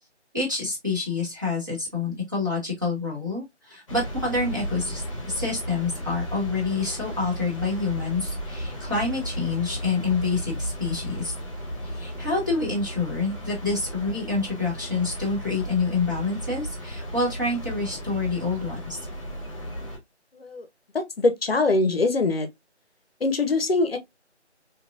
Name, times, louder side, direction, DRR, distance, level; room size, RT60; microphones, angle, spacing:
voice 1, 0.3-11.3 11.8-19.1, left 3 dB, 15° right, 0.8 m, -27 dB
sound 1, 3.9-20.0, equal, 30° left, 1.0 m, -34 dB
voice 2, 20.3-20.7 21.2-22.5 23.2-24.0, left 3 dB, 55° left, 0.7 m, -22 dB
3.7 x 2.9 x 2.3 m
figure-of-eight pair, 170°, 35 cm